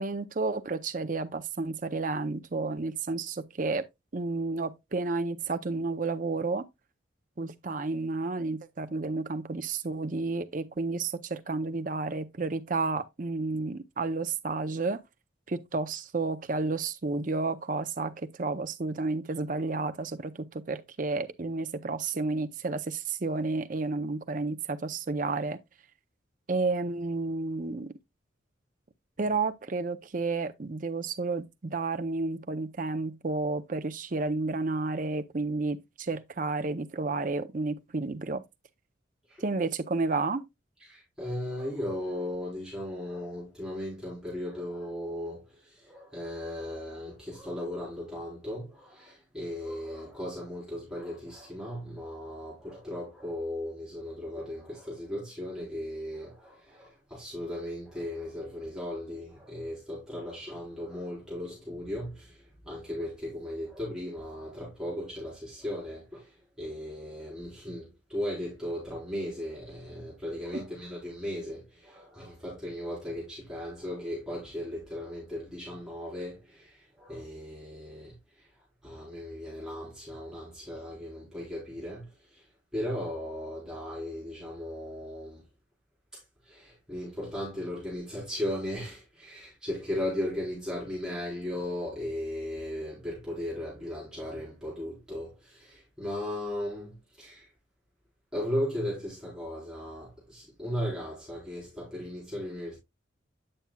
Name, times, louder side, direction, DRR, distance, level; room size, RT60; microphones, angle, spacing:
voice 1, 0.0-3.9 4.1-6.7 7.4-15.0 15.5-25.6 26.5-27.9 29.2-38.4 39.4-40.4 70.5-70.6, right 3 dB, 40° right, 0.6 m, -31 dB
voice 2, 40.8-78.5 78.8-82.5 82.7-85.4 86.1-97.5 98.3-102.8, left 1 dB, 5° right, 4.0 m, -37 dB
8.9 x 7.0 x 2.2 m
head